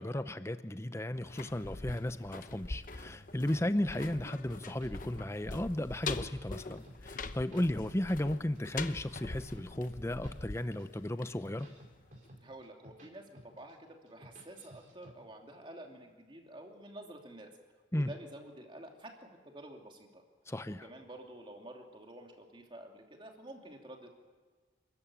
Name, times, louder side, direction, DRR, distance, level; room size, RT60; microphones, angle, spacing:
voice 1, 0.0-11.7 17.9-18.1 20.5-20.8, left 1 dB, 15° left, 11 dB, 0.7 m, -35 dB
sound 1, 1.1-12.0 12.3-12.4, left 3 dB, 45° left, 0.9 m, -43 dB
sound 2, 4.5-5.5 5.8-7.0 7.2-8.2 8.6-10.3 10.6-10.9 11.3-13.1 13.3-13.7 14.1-15.1, equal, 45° right, 4.5 m, -54 dB
voice 2, 12.4-17.5 17.9-20.2 20.7-24.1, right 1 dB, 25° right, 2 dB, 2.9 m, -50 dB
29.0 x 14.0 x 8.7 m, 1.5 s
head